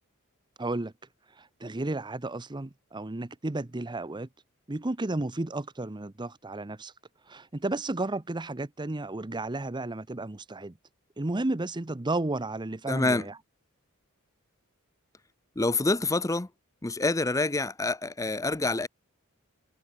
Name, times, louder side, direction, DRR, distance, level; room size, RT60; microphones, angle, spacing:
voice 1, 0.6-0.9 1.4-4.3 4.7-6.9 7.3-10.7 11.2-13.4, right 2 dB, 20° right, 0.8 m, -33 dB
voice 2, 12.9-13.3 15.6-16.5 16.8-18.9, left 2 dB, 15° left, 0.7 m, -27 dB
head